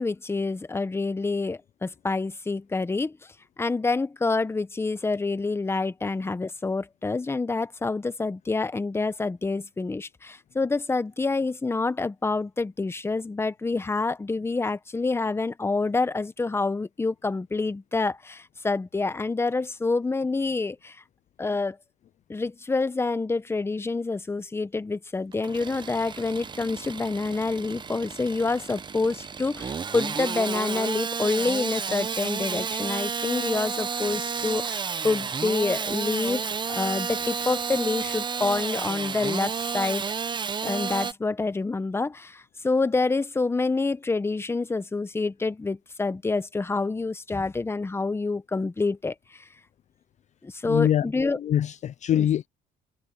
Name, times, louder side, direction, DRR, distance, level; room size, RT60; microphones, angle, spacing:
voice 1, 0.0-3.2 3.6-21.0 21.4-21.8 22.3-40.0 40.6-49.5 50.4-51.4 52.1-52.3, left 3 dB, 15° left, 0.9 m, -27 dB
Engine starting / Sawing, 25.3-41.1, right 6 dB, 25° right, 0.8 m, -31 dB
voice 2, 50.6-51.1 51.4-52.5, left 10 dB, 45° left, 0.5 m, -23 dB
cardioid pair, 110°, 17 cm